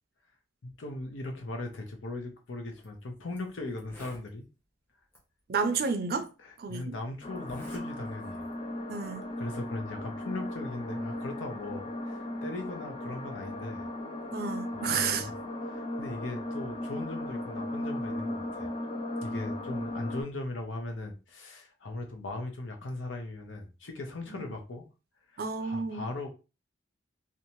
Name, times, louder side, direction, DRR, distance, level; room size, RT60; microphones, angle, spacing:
voice 1, 0.6-4.5 6.4-8.5 9.4-13.9 14.7-15.3 15.7-18.7 19.2-24.9 25.3-26.3, left 2 dB, 85° left, 0.7 m, -39 dB
Zipper (clothing), 2.7-2.9 3.4-3.5 3.7-4.3 5.1-5.2 6.2-6.3 7.3-7.8 8.2-8.5, left 1 dB, 10° left, 0.7 m, -49 dB
voice 2, 5.5-6.3 6.6-7.0 8.9-9.2 14.3-15.3 24.3-24.4 25.4-26.0, right 5 dB, 50° right, 0.4 m, -31 dB
sound 1, 7.2-20.2, left 1 dB, 30° left, 0.3 m, -36 dB
2.7 x 2.2 x 2.9 m
head